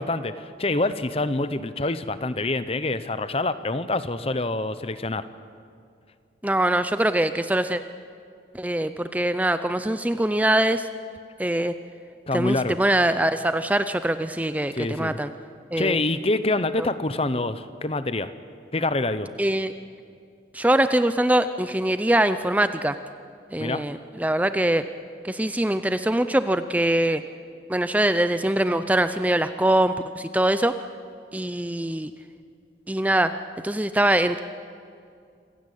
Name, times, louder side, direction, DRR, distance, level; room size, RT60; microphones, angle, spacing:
voice 1, 0.0-5.2 12.3-12.8 14.7-15.2 15.8-18.3 18.7-19.3 23.6-23.8, left 2 dB, 35° left, 13 dB, 0.8 m, -26 dB
voice 2, 6.4-7.8 8.5-10.9 11.4-11.7 12.3-15.3 15.7-16.0 16.8-16.9 19.4-19.7 20.5-23.0 23.5-24.8 25.2-27.2 27.7-30.7 31.3-32.1 32.9-33.3 33.6-34.4, right 1 dB, 10° right, 11 dB, 0.5 m, -23 dB
26.5 x 16.0 x 8.5 m, 2.3 s
head